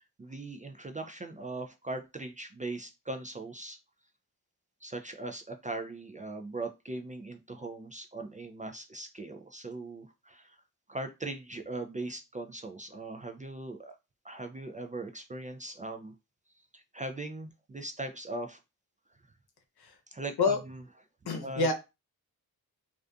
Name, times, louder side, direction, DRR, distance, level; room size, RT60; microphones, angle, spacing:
voice 1, 0.0-3.8 4.8-10.6 10.9-14.0 14.2-16.1 16.7-18.6 20.1-20.8 21.4-21.7, right 2 dB, 20° right, 5 dB, 0.3 m, -40 dB
voice 2, 21.3-21.7, left 4 dB, 70° left, 4 dB, 0.8 m, -27 dB
2.5 x 2.4 x 2.3 m, 0.25 s
cardioid pair, 50°, 40 cm